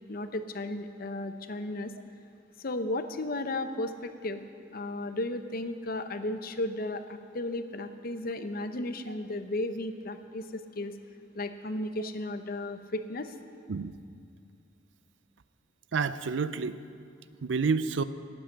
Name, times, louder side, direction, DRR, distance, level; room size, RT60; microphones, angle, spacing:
voice 1, 0.1-1.9 2.6-4.5 4.7-10.9 11.3-13.3, left 1 dB, 50° left, 9 dB, 0.7 m, -34 dB
voice 2, 15.9-16.8 17.4-18.0, right 5 dB, 70° right, 14 dB, 0.5 m, -29 dB
12.5 x 8.8 x 8.4 m, 2.4 s
head